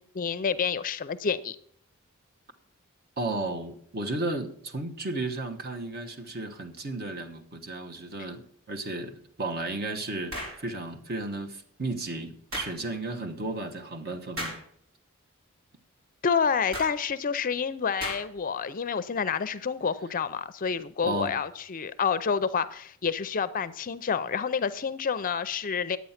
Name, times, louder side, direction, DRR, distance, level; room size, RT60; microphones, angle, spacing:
voice 1, 0.0-1.6 16.2-26.0, left 6 dB, 40° left, 0.5 m, -28 dB
voice 2, 3.2-14.6 21.0-21.4, right 2 dB, 45° right, 1.2 m, -34 dB
sound 1, 10.3-10.6 12.5-12.8 14.4-14.6 16.7-16.9 18.0-18.4, equal, 70° right, 4.8 m, -35 dB
10.5 x 8.4 x 5.7 m
head